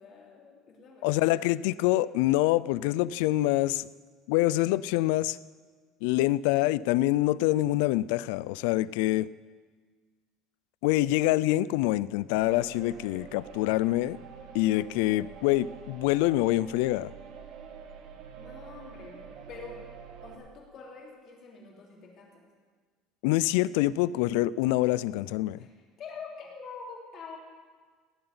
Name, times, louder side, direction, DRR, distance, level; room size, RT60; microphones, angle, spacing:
voice 1, 0.0-1.5 18.3-19.8 20.2-22.5 25.6-25.7 26.0-27.4, left 4 dB, 35° left, 0 dB, 3.1 m, -46 dB
voice 2, 1.0-3.9 4.3-5.4 6.0-9.3 10.8-14.2 14.5-17.1 23.2-25.6, left 16 dB, 90° left, 20 dB, 0.4 m, -25 dB
sound 1, 12.4-20.4, right 7 dB, 50° right, 1.5 m, -46 dB
17.5 x 7.8 x 9.6 m, 1.5 s
cardioid pair, 175°, 0 cm